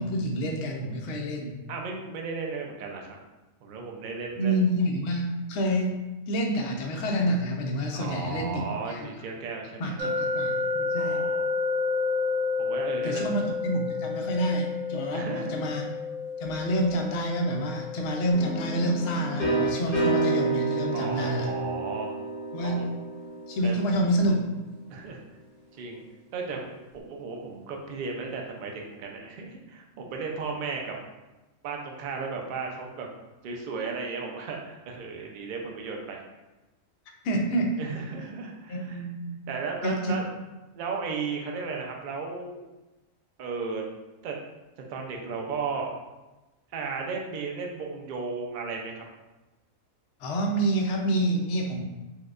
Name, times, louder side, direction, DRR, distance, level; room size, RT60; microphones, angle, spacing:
voice 1, 0.0-1.6 4.4-8.6 8.9-9.1 9.8-11.2 13.0-15.8 16.4-21.5 22.5-22.8 23.5-24.5 37.2-37.8 38.7-39.4 39.8-40.2 50.2-51.8, right 1 dB, 60° left, 0 dB, 0.8 m, -28 dB
voice 2, 1.7-3.2 3.6-4.6 7.9-10.1 11.0-11.5 12.6-13.3 15.1-15.6 19.8-19.9 20.9-22.2 22.6-22.9 23.6-23.7 24.9-25.2 25.7-26.0 26.3-31.0 31.6-33.1 33.4-36.2 37.8-39.0 39.5-40.2 40.7-42.6 43.4-43.8 44.2-44.3 44.9-45.9 46.7-49.0, right 4 dB, 75° right, 1 dB, 0.4 m, -35 dB
sound 1, 10.0-22.9, left 4 dB, 60° right, 0.8 m, -32 dB
sound 2, 18.3-24.0, right 2 dB, 40° left, 1.4 m, -29 dB
4.5 x 2.2 x 2.4 m, 1.1 s
omnidirectional pair, 1.4 m